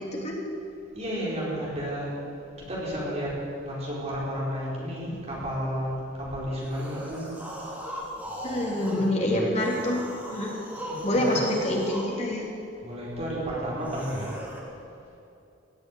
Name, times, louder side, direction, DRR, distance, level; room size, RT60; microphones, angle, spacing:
voice 1, 0.9-2.1 2.7-3.3 3.6-5.9 6.3-7.3 10.9-11.4 12.8-14.3, equal, 35° right, -6 dB, 4.6 m, -32 dB
sound 1, 6.6-9.1 9.5-12.2 13.8-14.6, equal, 10° right, 2.8 m, -38 dB
voice 2, 8.4-10.0 10.3-10.6 11.0-12.4, left 1 dB, 35° left, -2 dB, 3.0 m, -26 dB
17.0 x 7.8 x 9.2 m, 2.7 s
head